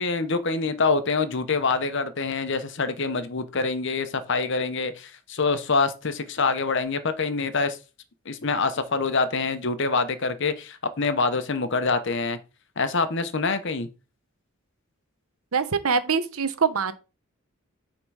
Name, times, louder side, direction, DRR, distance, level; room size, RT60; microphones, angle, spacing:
voice 1, 0.0-7.8 8.3-12.4 12.8-13.9, left 4 dB, 55° left, 0.9 m, -25 dB
voice 2, 15.5-17.0, right 5 dB, 85° right, 0.9 m, -24 dB
9.0 x 3.8 x 4.7 m
head